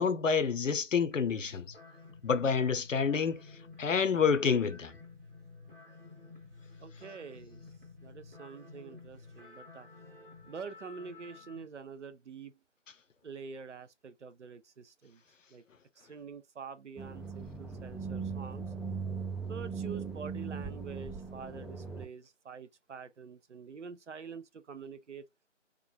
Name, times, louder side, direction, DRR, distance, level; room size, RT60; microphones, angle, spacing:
voice 1, 0.0-1.7 2.2-3.4 3.8-4.9, left 6 dB, 80° left, 0.6 m, -28 dB
sound 1, 1.1-11.7, left 3 dB, 45° right, 0.9 m, -52 dB
voice 2, 6.8-7.6 8.0-9.9 10.4-12.5 13.2-15.2 15.5-15.6 16.0-18.7 19.4-25.2, right 5 dB, 70° right, 0.5 m, -46 dB
sound 2, 17.0-22.1, right 5 dB, ahead, 0.3 m, -39 dB
2.9 x 2.4 x 2.2 m
figure-of-eight pair, 180°, 37 cm